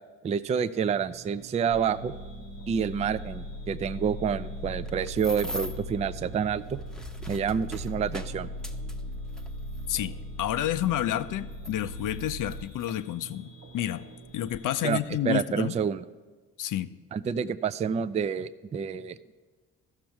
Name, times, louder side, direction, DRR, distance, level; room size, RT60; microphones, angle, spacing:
voice 1, 0.2-2.1 2.7-6.8 7.3-8.5 14.8-15.0 15.3-16.1 17.1-19.3, right 7 dB, 20° right, 12 dB, 0.3 m, -28 dB
sound 1, 0.6-15.2, right 4 dB, 35° right, 1.1 m, -49 dB
sound 2, 1.7-12.6, left 1 dB, 80° left, 0.9 m, -39 dB
sound 3, 4.6-5.9 6.7-10.0 10.8-10.9 11.5-13.0 13.8-13.9 14.3-14.6, equal, ahead, 0.8 m, -42 dB
voice 2, 9.9-14.1 14.3-15.8 16.6-17.0, left 12 dB, 50° left, 14 dB, 0.5 m, -30 dB
13.0 x 6.0 x 4.6 m, 1.4 s
hypercardioid pair, 50°, 40 cm